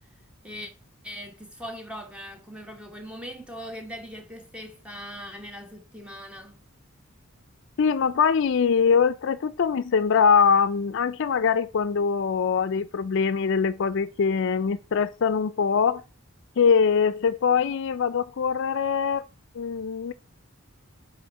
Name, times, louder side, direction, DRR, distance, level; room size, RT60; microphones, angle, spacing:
voice 1, 1.0-6.6, equal, 5° right, 1.0 m, -40 dB
voice 2, 7.8-16.0 16.6-19.2 19.5-20.1, left 6 dB, 60° left, 0.4 m, -23 dB
5.6 x 4.3 x 5.4 m
head